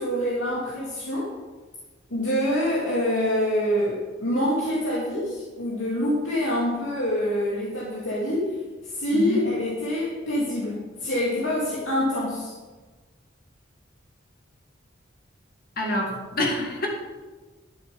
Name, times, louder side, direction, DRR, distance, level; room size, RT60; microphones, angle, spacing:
voice 1, 0.0-1.3 2.1-12.5, left 1 dB, 85° left, -6 dB, 2.5 m, -26 dB
voice 2, 15.8-16.9, left 1 dB, 50° left, 0 dB, 2.4 m, -26 dB
12.0 x 7.3 x 5.3 m, 1.3 s
head